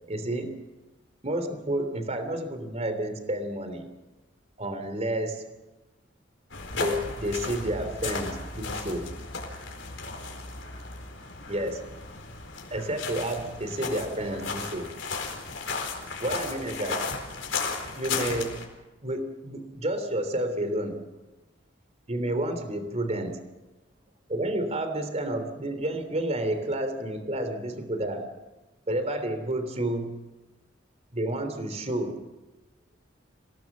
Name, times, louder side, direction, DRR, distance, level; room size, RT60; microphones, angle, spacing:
voice 1, 0.1-0.5 1.2-3.9 4.6-5.4 6.7-9.0 11.5-11.9 12.7-14.9 16.2-17.1 17.9-18.7 19.0-21.0 22.1-23.4 24.3-28.3 28.9-30.2 31.1-32.2, right 1 dB, 35° right, 8 dB, 3.2 m, -30 dB
sound 1, 6.5-18.7, left 4 dB, 80° left, 4.5 m, -35 dB
27.0 x 18.0 x 7.4 m, 1.1 s
head